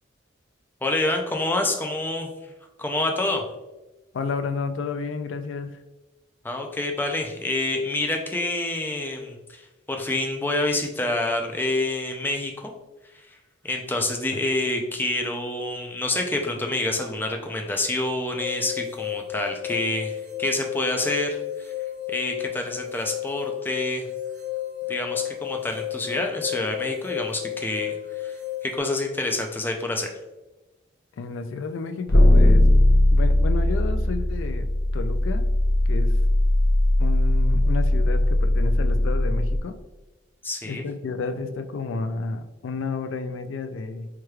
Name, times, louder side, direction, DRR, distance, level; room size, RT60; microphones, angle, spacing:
voice 1, 0.8-2.3 2.8-3.4 6.4-12.7 13.3-13.4 13.6-21.7 22.1-24.1 24.9-30.1 40.4-40.8, left 2 dB, 10° left, 2 dB, 0.4 m, -27 dB
voice 2, 4.1-5.8 14.3-14.4 31.1-32.7 33.1-35.5 35.9-36.2 37.0-39.8 40.6-44.1, left 4 dB, 85° left, 9 dB, 0.4 m, -31 dB
sound 1, 18.4-28.8, left 12 dB, 45° right, 0.5 m, -33 dB
sound 2, 32.1-39.6, left 1 dB, 55° left, 0.7 m, -19 dB
4.7 x 3.1 x 2.3 m, 1.1 s
head